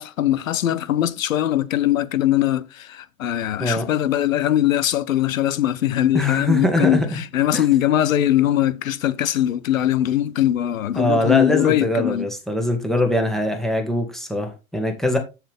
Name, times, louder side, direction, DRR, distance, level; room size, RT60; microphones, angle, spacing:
voice 1, 0.0-12.3, left 12 dB, 75° left, 0.8 m, -21 dB
voice 2, 6.1-7.2 7.5-7.7 10.9-15.2, left 1 dB, ahead, 1.8 m, -22 dB
7.3 x 7.2 x 3.6 m
hypercardioid pair, 100°, 41 cm